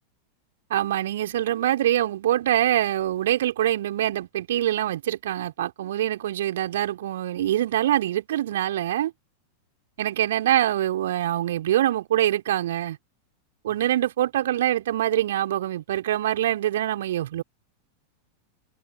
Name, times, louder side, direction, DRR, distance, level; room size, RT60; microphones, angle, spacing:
voice 1, 0.7-9.1 10.0-13.0 13.6-17.4, right 12 dB, 60° right, 4.6 m, -24 dB
figure-of-eight pair, 90°, 0 cm